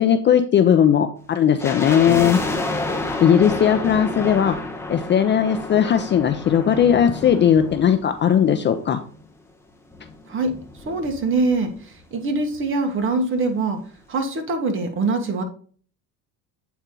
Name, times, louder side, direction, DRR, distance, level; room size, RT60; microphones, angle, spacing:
voice 1, 0.0-2.4 3.2-4.6 4.9-9.0, left 8 dB, 30° left, 8 dB, 0.5 m, -18 dB
sound 1, 1.6-8.9 9.1-9.2 9.9-11.7 12.0-12.1 12.3-12.6 13.0-13.1, left 2 dB, 5° left, 1.1 m, -30 dB
voice 2, 10.8-13.8 14.1-15.4, right 3 dB, 30° right, 5 dB, 1.4 m, -23 dB
8.1 x 4.3 x 3.7 m, 0.44 s
cardioid pair, 135°, 38 cm